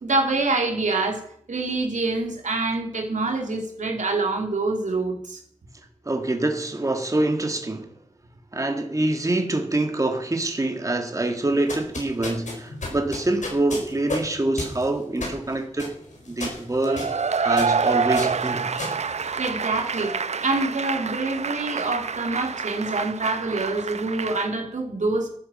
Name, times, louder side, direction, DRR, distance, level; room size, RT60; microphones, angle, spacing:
voice 1, 0.0-1.2 1.5-5.4 19.4-20.1 20.4-25.3, right 3 dB, 85° right, 2.9 m, -26 dB
voice 2, 6.0-7.9 8.5-15.9 16.3-17.1 17.4-18.7, right 2 dB, 25° right, 1.6 m, -25 dB
sound 1, 11.5-19.9, left 2 dB, 80° left, 4.7 m, -35 dB
Cheering / Applause / Crowd, 16.8-24.5, right 5 dB, 65° right, 0.6 m, -27 dB
12.5 x 9.9 x 7.5 m
wide cardioid pair, 75°, 12 cm